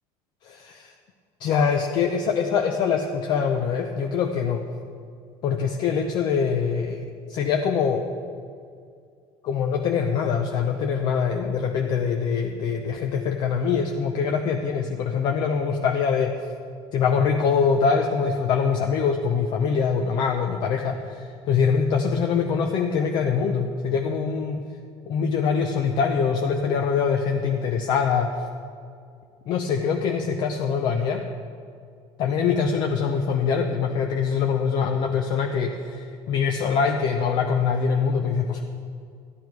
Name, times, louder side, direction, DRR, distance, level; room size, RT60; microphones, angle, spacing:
voice 1, 0.4-0.9 1.4-4.6 5.4-8.1 9.4-16.4 16.9-24.6 25.1-28.5 29.5-31.2 32.2-38.6, left 6 dB, 45° left, 3 dB, 0.7 m, -24 dB
13.0 x 10.5 x 4.7 m, 2.3 s
cardioid pair, 170°, 10 cm